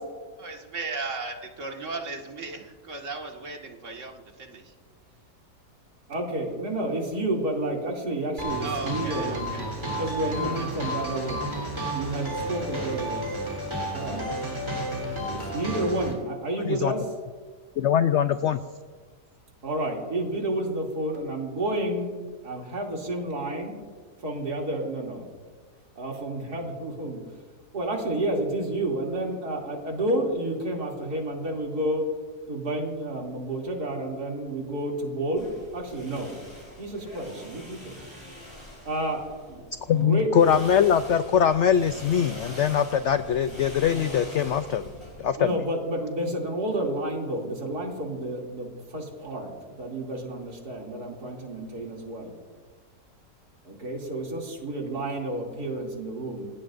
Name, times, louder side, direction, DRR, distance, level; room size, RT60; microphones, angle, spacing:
voice 1, 0.4-4.7 8.6-9.7 9.9-10.9, right 3 dB, 45° right, 2 dB, 2.0 m, -37 dB
voice 2, 6.1-11.5 11.9-13.2 13.9-14.4 15.2-17.0 19.6-22.1 22.4-23.7 24.2-25.2 26.0-27.2 27.7-32.1 32.5-36.4 36.8-38.0 38.8-39.2 39.5-39.6 39.9-40.3 45.4-52.3 53.6-56.5, right 1 dB, 70° right, -1 dB, 3.3 m, -30 dB
sound 1, 8.4-16.1, right 1 dB, 15° right, 3.4 m, -32 dB
voice 3, 17.8-18.6 39.9-44.9 45.2-45.6, left 8 dB, 75° left, 10 dB, 0.6 m, -22 dB
sound 2, 35.4-40.0 40.3-45.3, equal, 15° left, 5.5 m, -43 dB
28.5 x 17.5 x 2.6 m, 1.5 s
omnidirectional pair, 1.8 m